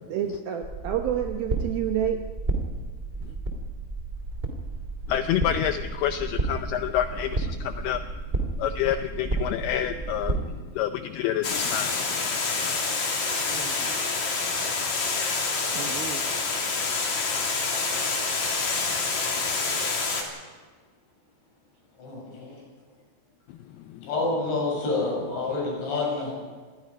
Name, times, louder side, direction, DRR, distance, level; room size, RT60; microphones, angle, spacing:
voice 1, 0.1-2.2 3.3-3.4 13.5-14.0 15.7-16.2, right 9 dB, 75° right, 4 dB, 2.3 m, -30 dB
sound 1, 0.6-10.4, right 3 dB, 20° right, 1.4 m, -32 dB
voice 2, 5.1-8.0 8.6-12.4 12.6-12.7 23.9-24.1, left 10 dB, 90° left, 9 dB, 2.2 m, -28 dB
Water, 11.4-20.2, left 4 dB, 40° left, 3.6 m, -27 dB
voice 3, 22.0-22.6 24.0-26.3, left 3 dB, 70° left, -3 dB, 10.5 m, -28 dB
26.0 x 20.0 x 5.3 m, 1.5 s
omnidirectional pair, 5.4 m